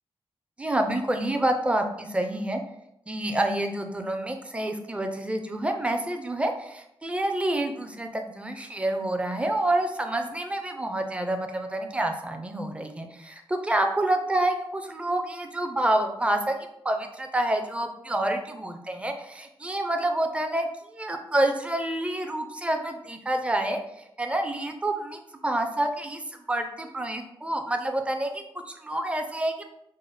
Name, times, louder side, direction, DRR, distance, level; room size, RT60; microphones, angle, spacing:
voice 1, 0.6-2.6 3.1-16.6 16.8-23.8 24.2-29.6, right 1 dB, 10° right, 5 dB, 0.5 m, -28 dB
5.2 x 2.0 x 3.3 m, 0.82 s
wide cardioid pair, 90°, 10 cm